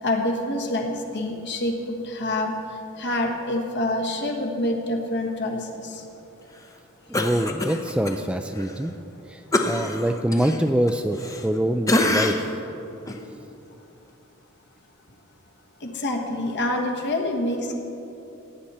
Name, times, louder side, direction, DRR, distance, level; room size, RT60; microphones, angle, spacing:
voice 1, 0.0-2.5 3.0-6.0 15.8-17.8, left 1 dB, 55° left, 2 dB, 1.4 m, -26 dB
Cough, 7.1-8.2 8.6-8.7 9.5-11.6 11.9-12.6 13.1-13.2, left 1 dB, 15° left, 0.8 m, -25 dB
voice 2, 7.1-8.9 9.3-12.4, right 1 dB, 5° right, 7 dB, 0.3 m, -25 dB
17.0 x 9.9 x 4.3 m, 2.9 s
head